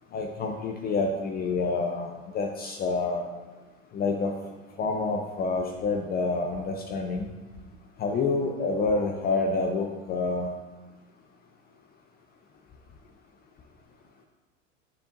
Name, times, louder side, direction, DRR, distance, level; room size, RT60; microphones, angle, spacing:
voice 1, 0.1-3.3 3.9-4.3 4.8-7.3 8.0-10.5, left 3 dB, 25° left, 3 dB, 0.5 m, -28 dB
7.5 x 6.8 x 2.5 m, 1.2 s
hypercardioid pair, 90°, 38 cm